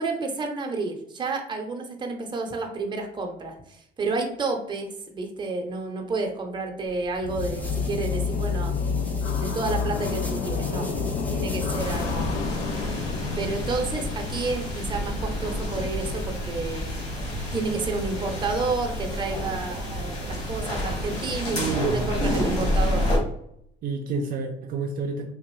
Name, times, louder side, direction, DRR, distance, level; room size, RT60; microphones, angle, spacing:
voice 1, 0.0-8.7 9.4-10.9 11.3-12.6 13.4-17.1 17.5-23.1, right 3 dB, 25° right, 3 dB, 0.7 m, -30 dB
sound 1, 6.9-12.2, equal, 10° left, 0.5 m, -43 dB
sound 2, 7.2-22.1, left 5 dB, 70° left, 0.4 m, -31 dB
sound 3, 11.8-23.2, left 1 dB, 40° left, 1.4 m, -29 dB
voice 2, 21.5-22.5 23.8-25.3, right 3 dB, 60° right, 2 dB, 0.4 m, -29 dB
3.4 x 2.5 x 3.1 m, 0.72 s
cardioid pair, 110°, 17 cm